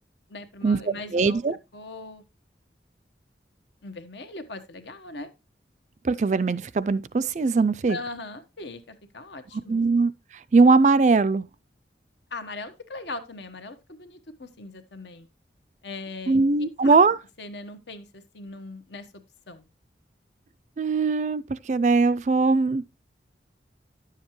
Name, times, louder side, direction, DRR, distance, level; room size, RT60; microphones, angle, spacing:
voice 1, 0.3-1.4 1.7-2.2 3.8-5.3 7.9-9.8 12.3-15.3 15.8-16.4 16.8-17.0 17.4-19.6, left 2 dB, 75° left, 1.2 m, -39 dB
voice 2, 1.1-1.6 6.0-8.0 9.7-10.1 10.5-11.5 16.3-17.2 20.8-22.8, right 4 dB, 40° right, 0.4 m, -20 dB
10.5 x 7.3 x 3.1 m
head